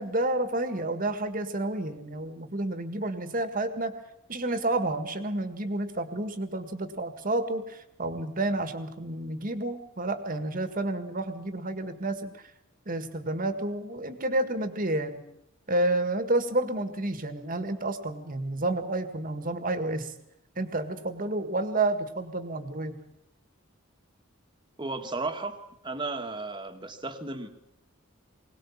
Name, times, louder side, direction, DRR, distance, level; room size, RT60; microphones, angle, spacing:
voice 1, 0.0-3.9 4.3-12.3 12.9-15.2 15.7-20.1 20.6-23.0, right 2 dB, 40° right, 9 dB, 1.8 m, -30 dB
voice 2, 24.8-27.5, right 3 dB, 20° right, 6 dB, 1.7 m, -34 dB
21.5 x 19.0 x 7.3 m, 0.81 s
head